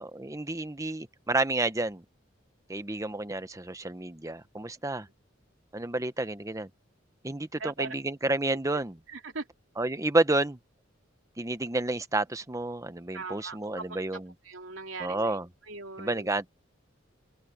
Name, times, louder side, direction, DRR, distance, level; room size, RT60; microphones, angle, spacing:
voice 1, 0.0-2.0 2.7-5.1 5.7-6.7 7.2-9.0 9.8-10.6 11.4-14.3 15.0-15.5 16.0-16.5, right 2 dB, 15° right, 0.9 m, -30 dB
voice 2, 7.6-7.9 8.5-8.6 9.1-9.4 13.1-15.4 15.7-16.3, right 4 dB, 85° right, 3.1 m, -40 dB
open air
head